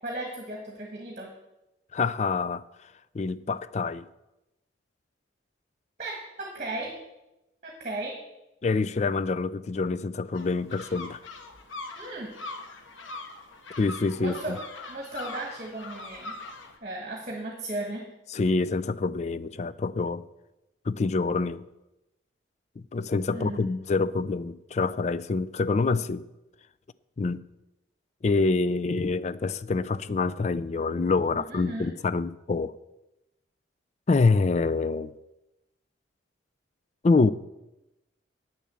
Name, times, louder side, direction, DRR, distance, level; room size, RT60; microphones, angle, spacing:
voice 1, 0.0-1.3 6.0-6.9 7.6-8.2 12.0-12.3 14.2-14.6 14.9-16.3 16.8-18.1 23.3-23.7 31.3-31.9, right 2 dB, 40° right, 1.5 m, -36 dB
voice 2, 1.9-4.1 8.6-11.2 13.8-14.6 18.3-20.2 20.9-21.6 22.8-26.2 27.2-27.5 28.2-32.7 34.1-35.1 37.0-37.3, left 3 dB, 35° left, 0.3 m, -26 dB
sound 1, 10.4-16.8, left 2 dB, 90° left, 1.2 m, -41 dB
8.7 x 7.0 x 7.5 m
head